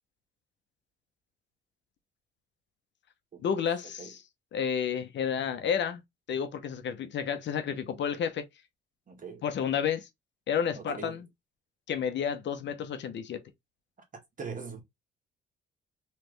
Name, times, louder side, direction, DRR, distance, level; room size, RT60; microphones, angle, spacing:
voice 1, 3.4-4.2 4.5-6.0 6.3-8.5 9.4-10.1 10.5-11.2 11.9-13.4, left 7 dB, 65° left, 0.9 m, -31 dB
voice 2, 9.1-9.5 10.7-11.2 14.1-14.8, right 5 dB, 40° right, 1.7 m, -42 dB
3.3 x 3.3 x 3.2 m
cardioid pair, 90°, 20 cm